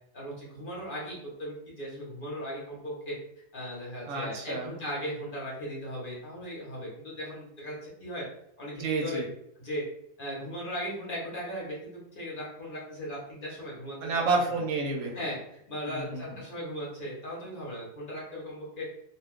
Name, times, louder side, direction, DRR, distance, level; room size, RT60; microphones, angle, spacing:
voice 1, 0.1-3.2 3.5-8.2 8.6-9.2 9.6-9.8 10.2-14.1 15.1-18.9, equal, 45° left, -5 dB, 0.9 m, -37 dB
voice 2, 4.1-4.7 8.8-9.3 14.0-15.2 15.9-16.4, right 3 dB, 70° right, 0 dB, 1.0 m, -30 dB
2.5 x 2.2 x 3.5 m, 0.74 s
omnidirectional pair, 1.4 m